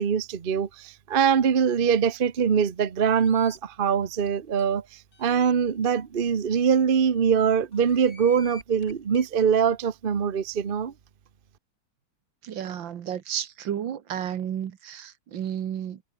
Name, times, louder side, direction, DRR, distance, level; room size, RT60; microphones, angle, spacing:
voice 1, 0.0-4.8 5.2-10.9, right 7 dB, 40° right, 0.8 m, -23 dB
sound 1, 3.1-3.6 4.2-4.3 4.6-4.7 5.1-5.5 6.2-6.3 6.6-6.7 7.7-9.3, left 3 dB, 45° left, 4.4 m, -49 dB
voice 2, 12.4-16.0, right 9 dB, 65° right, 1.9 m, -32 dB
omnidirectional pair, 2.3 m